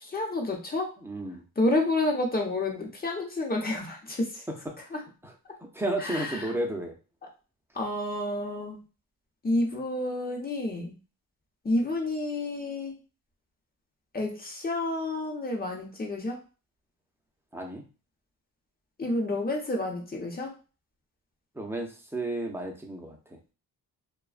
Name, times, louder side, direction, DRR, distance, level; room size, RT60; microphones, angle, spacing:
voice 1, 0.0-0.9 1.6-4.4 4.9-5.0 6.0-6.4 7.7-8.8 9.4-10.9 11.6-12.9 14.1-16.4 19.0-20.5, left 2 dB, 25° left, 0 dB, 0.9 m, -29 dB
voice 2, 1.0-1.5 4.5-5.3 5.6-6.9 17.5-17.8 21.5-23.4, right 1 dB, 5° right, 1 dB, 0.7 m, -33 dB
2.5 x 2.3 x 2.4 m, 0.32 s
cardioid pair, 80°, 40 cm